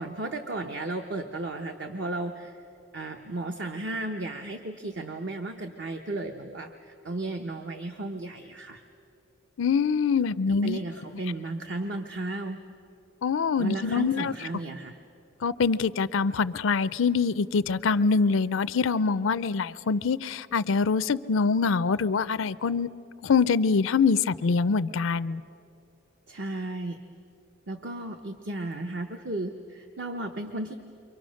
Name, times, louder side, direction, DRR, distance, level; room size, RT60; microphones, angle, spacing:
voice 1, 0.0-2.6 2.9-8.8 10.5-12.6 13.6-15.0 26.3-27.0 27.7-30.7, right 2 dB, 55° right, 5 dB, 0.9 m, -34 dB
voice 2, 9.6-10.8 13.2-14.3 15.4-22.9 23.2-25.4, left 5 dB, 70° left, 15 dB, 0.5 m, -24 dB
29.0 x 24.5 x 6.4 m, 2.8 s
head